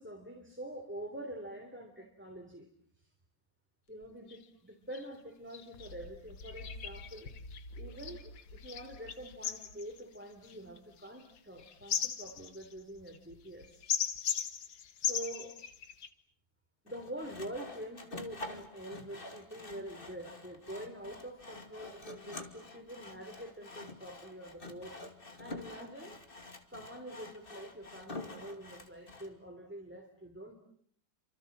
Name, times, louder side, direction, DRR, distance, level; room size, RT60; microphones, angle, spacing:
voice 1, 0.0-2.7 3.0-3.1 3.9-7.3 7.7-13.8 15.0-15.6 16.8-25.0 25.4-26.2 26.7-30.5, right 1 dB, 5° right, 3 dB, 3.4 m, -46 dB
sound 1, 4.0-4.1 4.3-4.4 4.9-5.1 5.5-16.1, left 8 dB, 70° left, 2.2 m, -39 dB
Sawing, 16.9-29.3, left 2 dB, 25° left, 2.6 m, -48 dB
29.5 x 26.5 x 7.5 m, 0.62 s
omnidirectional pair, 2.2 m